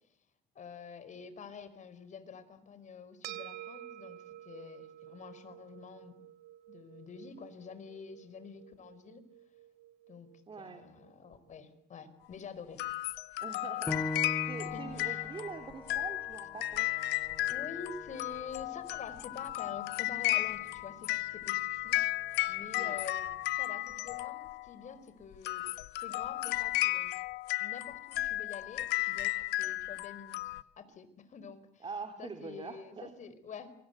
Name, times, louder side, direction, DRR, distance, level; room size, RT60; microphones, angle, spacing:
voice 1, 0.5-4.2 4.4-6.1 6.7-9.2 10.1-10.3 10.6-12.8 14.7-15.2 17.5-22.0 22.5-23.3 23.5-25.6 26.0-27.1 27.6-31.9 32.2-33.7, left 6 dB, 45° left, 12 dB, 4.7 m, -47 dB
sound 1, 3.2-11.8, right 14 dB, 85° right, 2.5 m, -51 dB
voice 2, 10.5-10.9 13.4-16.9 22.7-23.0 31.8-33.1, right 5 dB, 30° right, 6 dB, 3.3 m, -44 dB
sound 2, 12.8-24.7 25.3-30.6, left 19 dB, 85° left, 1.2 m, -34 dB
Piano, 13.9-19.0 19.5-19.6 20.2-20.7, left 1 dB, 10° left, 2.8 m, -42 dB
28.5 x 24.5 x 8.1 m, 0.65 s
cardioid pair, 110°, 17 cm